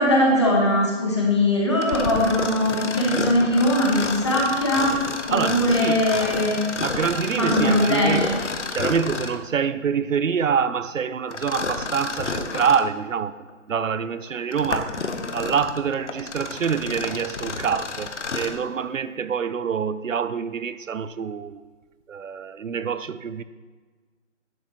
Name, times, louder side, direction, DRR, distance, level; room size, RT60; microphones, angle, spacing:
voice 1, 0.0-4.9 5.3-6.5 7.4-8.4, left 1 dB, 20° left, 1.0 m, -20 dB
Mechanisms, 1.8-9.5 11.3-12.9 13.5-13.6 14.3-18.6, left 4 dB, 65° left, 0.8 m, -30 dB
voice 2, 5.3-6.0 6.8-8.3 8.7-15.1 15.3-21.6 22.1-23.4, right 7 dB, 85° right, 0.6 m, -26 dB
10.5 x 6.2 x 3.0 m
figure-of-eight pair, 165°, 38 cm